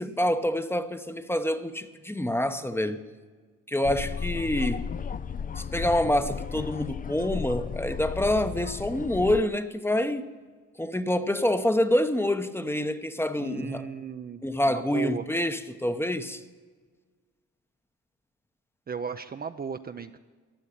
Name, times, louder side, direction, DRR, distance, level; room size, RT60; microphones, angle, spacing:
voice 1, 0.0-3.1 3.7-4.9 5.6-10.3 10.8-13.9 14.4-16.4, left 1 dB, 10° left, 0.9 m, -27 dB
sound 1, 3.8-9.4, left 6 dB, 30° left, 0.5 m, -34 dB
voice 2, 13.4-15.3 18.9-20.2, right 6 dB, 30° right, 0.6 m, -36 dB
15.0 x 10.0 x 9.0 m
cardioid pair, 90°, 30 cm